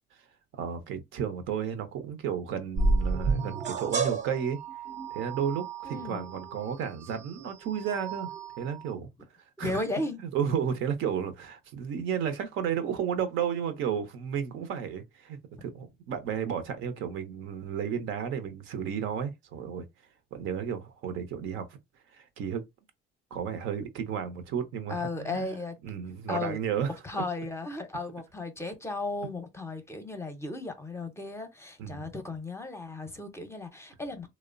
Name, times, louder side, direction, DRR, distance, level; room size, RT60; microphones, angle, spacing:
voice 1, 0.5-4.6 5.1-8.3 8.6-9.1 9.6-9.8 10.2-19.9 20.3-21.7 22.1-22.6 23.3-25.5 25.8-27.0 31.8-32.1, right 8 dB, 75° right, 0.6 m, -33 dB
sound 1, 2.8-8.9, right 3 dB, 35° right, 0.5 m, -32 dB
voice 2, 5.8-6.2 9.6-10.2 24.9-25.8 26.3-26.6 27.0-34.3, left 2 dB, 15° left, 0.6 m, -35 dB
3.0 x 2.0 x 2.4 m
cardioid pair, 95°, 20 cm